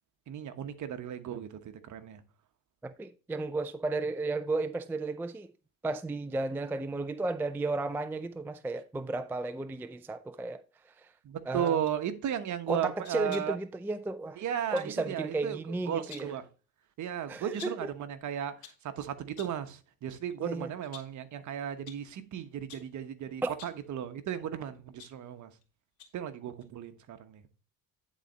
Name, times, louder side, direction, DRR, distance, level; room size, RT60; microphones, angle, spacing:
voice 1, 0.3-2.2 11.2-13.6 14.4-16.4 17.0-18.5 18.8-25.5 26.1-27.4, right 9 dB, 50° right, 1.1 m, -35 dB
voice 2, 2.8-5.5 5.8-10.6 11.0-11.1 11.5-11.8 12.7-14.4 14.7-16.3 17.3-17.9 20.4-20.7 23.4-23.5, right 2 dB, 5° right, 0.4 m, -33 dB
sound 1, 11.6-12.0 13.0-13.6 14.8-15.0 15.9-16.4 17.6-17.9 18.4-18.9 19.4-19.7 20.1-20.3 20.8-21.2 21.9-22.1 22.7-23.0 23.5-23.9 24.6-25.6 26.0-26.3 26.6-26.7, left 8 dB, 70° left, 2.3 m, -51 dB
10.0 x 4.2 x 4.0 m
supercardioid pair, 100°, 37 cm